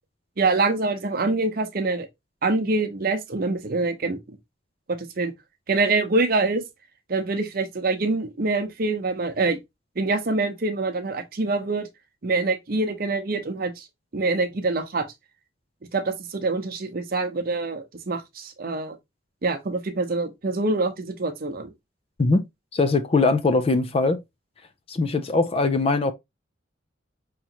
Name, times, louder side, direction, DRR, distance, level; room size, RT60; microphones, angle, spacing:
voice 1, 0.4-2.1 2.4-4.4 4.9-5.3 5.7-6.6 7.1-9.6 10.0-11.9 12.2-13.9 14.1-15.0 15.9-19.0 19.4-21.7, right 3 dB, 50° right, 0.7 m, -25 dB
voice 2, 22.7-24.2 24.9-26.1, left 3 dB, 30° left, 0.4 m, -21 dB
4.9 x 3.1 x 2.8 m
head